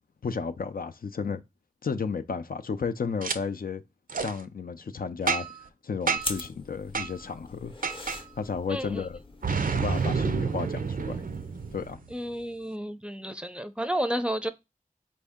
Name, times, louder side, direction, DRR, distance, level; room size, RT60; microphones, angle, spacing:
voice 1, 0.2-1.4 1.8-3.8 4.2-5.5 5.8-7.7 8.4-9.2 9.7-11.2 11.7-12.0, left 5 dB, 80° left, 0.4 m, -33 dB
Boom, 3.2-3.4 4.1-4.3 5.3-5.7 6.1-6.4 6.9-7.1 7.8-8.2 9.4-12.1, right 5 dB, 70° right, 0.5 m, -29 dB
sound 1, 6.2-11.9, left 2 dB, 35° left, 0.6 m, -42 dB
voice 2, 8.7-9.1 12.1-14.5, equal, 5° right, 0.5 m, -31 dB
4.2 x 2.7 x 3.5 m
wide cardioid pair, 55°, 15 cm